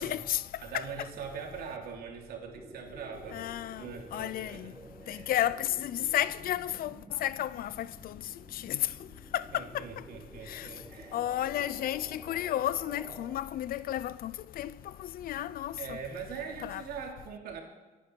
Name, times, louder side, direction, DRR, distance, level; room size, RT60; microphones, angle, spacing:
voice 1, 0.0-0.4 0.7-0.8 3.3-3.8 4.1-4.7 5.1-8.2 8.5-8.9 9.3-9.8 10.5-10.7 11.1-14.7 15.0-16.0 16.6-16.8, left 12 dB, 65° left, 0.6 m, -32 dB
voice 2, 0.6-3.4 3.8-4.7 5.0-5.3 9.5-11.2 11.6-11.7 15.8-17.6, right 6 dB, 70° right, 3.0 m, -42 dB
sound 1, 2.5-13.4, right 2 dB, 20° right, 1.5 m, -52 dB
25.5 x 10.0 x 4.6 m
supercardioid pair, 70°, 16 cm